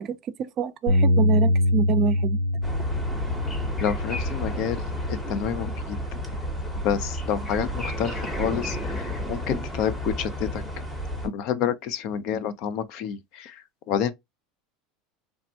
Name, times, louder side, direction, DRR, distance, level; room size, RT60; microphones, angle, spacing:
voice 1, 0.0-2.4, right 7 dB, 35° right, 0.4 m, -27 dB
Bass guitar, 0.9-5.3 5.9-7.1, left 1 dB, 75° left, 1.0 m, -25 dB
sound 1, 2.6-11.3, equal, 5° left, 0.8 m, -31 dB
voice 2, 3.8-4.8 5.1-6.0 6.8-10.7 11.2-14.1, left 8 dB, 55° left, 0.5 m, -29 dB
3.4 x 2.0 x 2.7 m
supercardioid pair, 145°, 0 cm